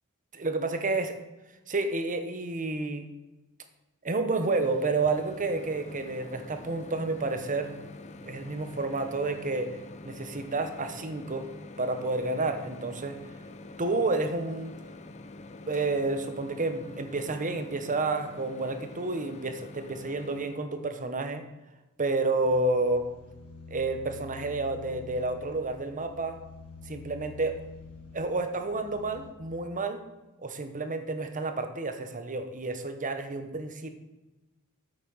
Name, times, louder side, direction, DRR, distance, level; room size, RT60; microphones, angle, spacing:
voice 1, 0.3-1.2 1.7-3.0 4.0-7.8 8.2-9.8 10.0-13.2 13.8-14.7 15.6-21.4 22.0-23.1 23.7-26.4 26.9-27.5 28.1-30.0 30.4-33.9, right 3 dB, 35° right, 8 dB, 1.0 m, -30 dB
Microwave oven, 4.3-20.6, left 2 dB, 30° left, 0.7 m, -46 dB
sound 1, 22.4-29.3, left 4 dB, 80° left, 1.8 m, -48 dB
8.6 x 8.2 x 5.6 m, 1.1 s
head